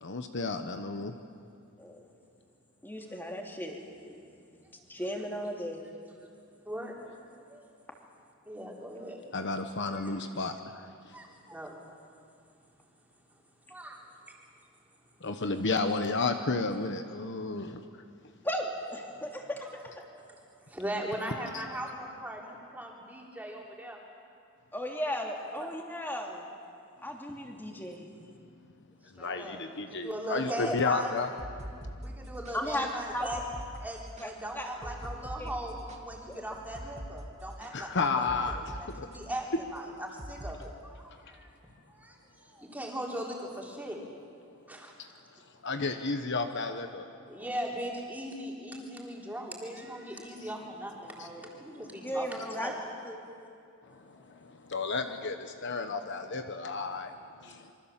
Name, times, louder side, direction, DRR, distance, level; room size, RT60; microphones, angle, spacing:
voice 1, 0.0-1.1 9.3-11.1 15.2-17.8 21.5-21.6 29.2-31.3 37.7-39.1 45.0-45.1 45.6-47.1 50.4-50.5 51.2-51.3 52.0-52.1 53.8-57.7, left 3 dB, 55° left, 7 dB, 1.1 m, -32 dB
voice 2, 2.8-3.8 4.1-4.2 4.9-5.8 18.4-19.7 24.7-26.4 27.0-28.1 30.6-30.7 32.5-33.3 34.2-34.3 34.5-34.9 35.4-35.5 52.0-52.7 53.0-53.1, equal, 10° left, 1 dB, 2.8 m, -35 dB
voice 3, 8.5-9.2 10.0-10.1 11.1-11.8 13.7-14.0 15.7-15.8 20.1-20.2 20.7-24.0 25.4-25.7 29.2-31.1 32.0-33.4 33.8-41.5 41.9-44.0 44.7-44.9 47.3-52.8 57.5-57.7, right 1 dB, 10° right, -2 dB, 3.8 m, -39 dB
sound 1, 31.2-38.8 39.1-39.4 40.2-40.6, equal, 30° right, 2.2 m, -43 dB
27.0 x 24.0 x 7.5 m, 2.4 s
head